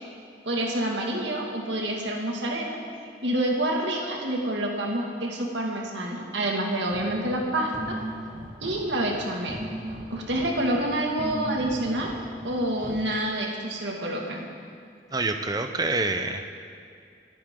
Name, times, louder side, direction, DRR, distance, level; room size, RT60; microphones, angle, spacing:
voice 1, 0.4-2.8 3.2-8.0 8.6-9.6 10.1-12.2 12.4-14.5, right 1 dB, 85° right, 0 dB, 2.2 m, -28 dB
sound 1, 6.9-13.0, right 1 dB, 45° right, 1.8 m, -38 dB
voice 2, 15.1-16.6, right 3 dB, 20° right, 6 dB, 0.7 m, -27 dB
26.5 x 10.0 x 3.8 m, 2.3 s
head